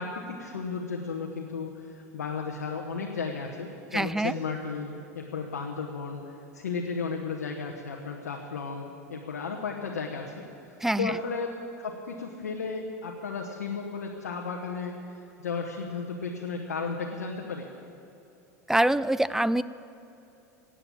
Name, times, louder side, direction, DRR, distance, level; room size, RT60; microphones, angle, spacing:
voice 1, 0.0-6.2 6.5-10.4 11.0-11.5 11.8-14.9 15.4-17.7, left 5 dB, 85° left, 1 dB, 1.2 m, -34 dB
voice 2, 3.9-4.3 10.8-11.2 18.7-19.6, right 1 dB, 5° right, 17 dB, 0.4 m, -25 dB
16.0 x 8.9 x 8.7 m, 2.8 s
hypercardioid pair, 90°, 9 cm